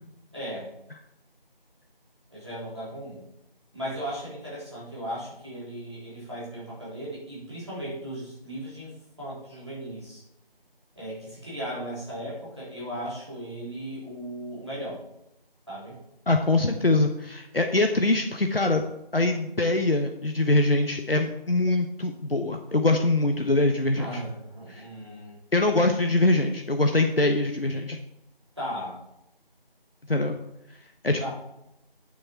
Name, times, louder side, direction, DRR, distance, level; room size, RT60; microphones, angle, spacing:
voice 1, 0.3-0.7 2.3-3.2 3.7-10.2 11.0-15.0 15.7-16.0 24.0-25.4 28.6-29.0 31.2-31.3, equal, 30° right, -8 dB, 3.6 m, -37 dB
voice 2, 16.3-18.8 19.1-24.2 24.7-24.9 25.5-28.0 30.1-30.4 31.0-31.3, left 2 dB, 70° left, 5 dB, 1.0 m, -23 dB
9.7 x 6.5 x 4.5 m, 0.84 s
figure-of-eight pair, 180°, 30 cm